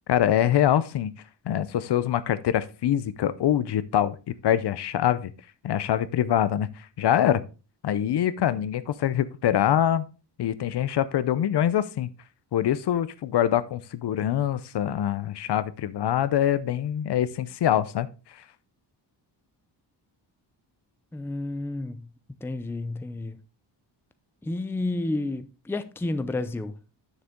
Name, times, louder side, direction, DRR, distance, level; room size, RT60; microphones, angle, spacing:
voice 1, 0.1-1.1 1.5-5.3 5.6-7.4 7.8-10.0 10.4-12.1 12.5-18.1 18.3-18.4, left 10 dB, 65° left, 0.7 m, -24 dB
voice 2, 21.1-22.1 22.4-23.4 24.4-26.7, left 2 dB, 5° left, 0.4 m, -30 dB
9.6 x 6.6 x 3.6 m
wide cardioid pair, 150°, 44 cm